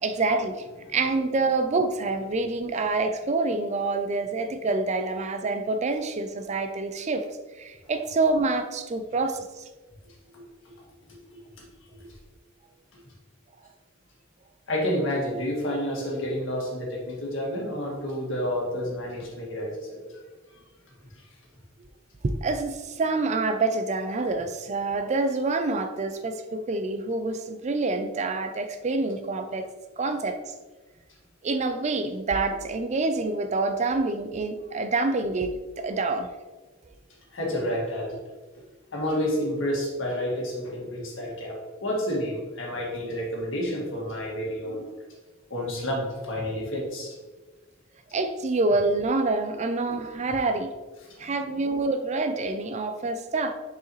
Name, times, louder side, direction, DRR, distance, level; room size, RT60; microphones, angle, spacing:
voice 1, 0.0-7.2 7.6-9.6 22.2-29.7 30.0-30.4 31.4-35.5 35.8-36.3 48.1-50.7 51.2-53.5, right 3 dB, 35° right, 8 dB, 0.4 m, -27 dB
voice 2, 14.7-20.1 37.3-38.1 38.9-44.9 45.5-47.1 49.9-50.0 51.5-51.6, equal, 70° left, -3 dB, 1.8 m, -29 dB
6.7 x 4.8 x 3.0 m, 1.3 s
head